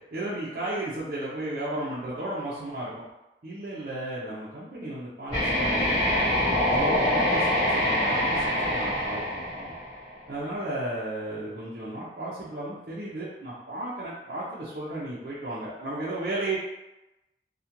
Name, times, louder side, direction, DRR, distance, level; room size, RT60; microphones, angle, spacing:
voice 1, 0.1-3.0 3.4-6.2 6.7-9.7 10.3-16.6, right 1 dB, 55° right, -8 dB, 0.5 m, -34 dB
sound 1, 5.3-10.2, left 1 dB, 25° left, 1.1 m, -25 dB
2.4 x 2.1 x 2.8 m, 0.96 s
head